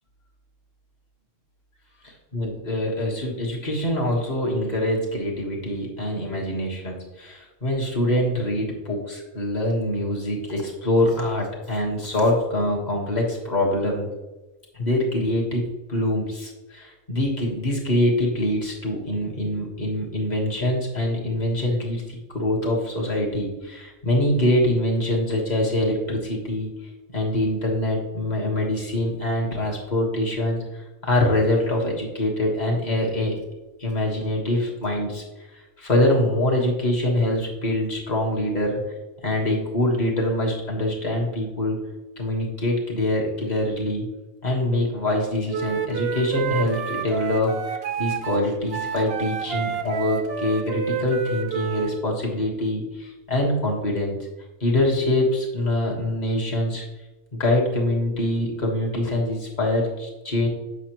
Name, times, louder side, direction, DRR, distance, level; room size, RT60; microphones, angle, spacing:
voice 1, 2.3-14.1 14.7-26.7 27.1-33.4 33.8-35.2 35.5-38.8 39.2-41.8 42.2-44.1 44.4-47.6 48.0-54.3 54.6-56.8 57.3-60.5, left 1 dB, 30° left, -2 dB, 1.5 m, -24 dB
Wind instrument woodwind instrument, 45.5-51.9, right 6 dB, 60° right, 0.7 m, -29 dB
8.1 x 5.8 x 3.0 m, 1.1 s
omnidirectional pair, 1.6 m